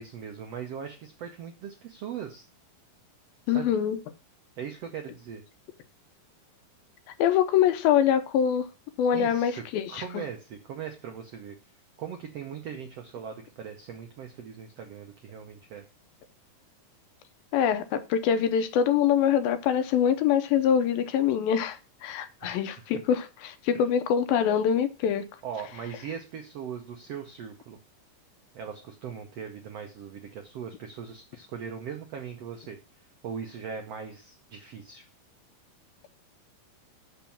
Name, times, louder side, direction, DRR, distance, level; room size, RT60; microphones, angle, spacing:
voice 1, 0.0-2.5 3.5-3.7 4.6-5.4 9.1-9.6 9.9-11.6 12.0-15.8 22.4-23.0 23.7-23.9 25.4-27.8 28.5-32.8 33.2-35.0, right 7 dB, 85° right, 1.4 m, -39 dB
voice 2, 3.5-4.0 7.2-8.7 9.0-10.2 17.5-25.3, left 8 dB, 80° left, 2.4 m, -24 dB
6.0 x 5.9 x 7.1 m
omnidirectional pair, 4.3 m